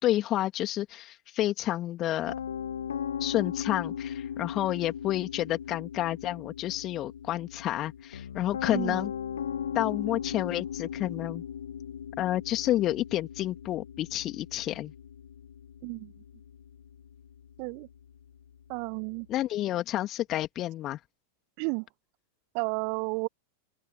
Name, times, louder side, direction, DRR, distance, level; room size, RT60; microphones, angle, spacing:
voice 1, 0.0-2.3 3.2-9.1 9.7-11.4 12.2-14.9 19.3-21.0, left 14 dB, 35° left, 2.7 m, -30 dB
Piano, 2.3-19.4, left 8 dB, 65° left, 0.9 m, -38 dB
voice 2, 18.7-19.3 21.6-21.9 22.5-23.3, right 40 dB or more, 45° right, 1.2 m, -32 dB
open air
figure-of-eight pair, 90°, 0 cm